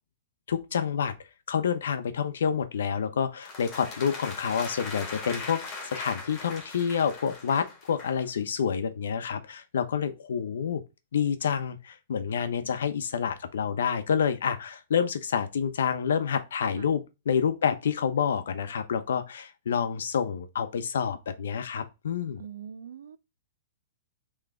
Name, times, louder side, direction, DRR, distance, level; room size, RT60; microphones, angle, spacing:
voice 1, 0.5-1.1 1.5-10.8 11.1-22.4, left 7 dB, 80° left, 0.7 m, -28 dB
sound 1, 3.4-8.2, left 3 dB, 30° left, 1.3 m, -40 dB
voice 2, 22.4-23.2, right 8 dB, 80° right, 0.4 m, -42 dB
3.7 x 3.1 x 3.3 m
hypercardioid pair, 150°, 0 cm